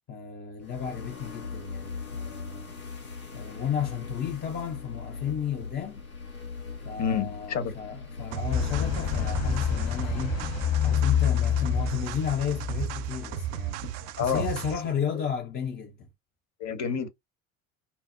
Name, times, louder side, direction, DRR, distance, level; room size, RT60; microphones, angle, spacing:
voice 1, 0.1-2.7 3.3-6.0 6.8-10.5 10.8-16.1, left 8 dB, 25° left, 0.5 m, -33 dB
sound 1, 0.6-14.5, left 4 dB, 90° left, 1.4 m, -41 dB
voice 2, 7.0-7.7 13.8-13.9 14.2-14.5 16.6-17.1, left 7 dB, 40° left, 1.0 m, -28 dB
sound 2, 8.3-14.9, right 12 dB, 55° right, 0.4 m, -35 dB
sound 3, 8.5-13.5, left 9 dB, 55° left, 1.5 m, -28 dB
4.2 x 2.0 x 2.5 m
figure-of-eight pair, 60°, 42 cm